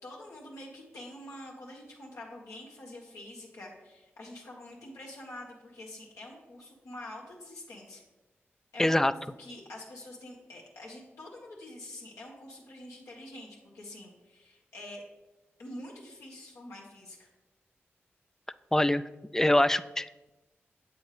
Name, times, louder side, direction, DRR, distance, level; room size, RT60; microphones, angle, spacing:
voice 1, 0.0-8.0 8.7-15.0 15.6-17.3, left 1 dB, 85° left, -3 dB, 1.6 m, -46 dB
voice 2, 8.8-9.1 18.7-19.0 19.3-20.3, left 1 dB, 10° left, 15 dB, 0.3 m, -24 dB
7.8 x 6.9 x 3.3 m, 1.1 s
cardioid pair, 40°, 5 cm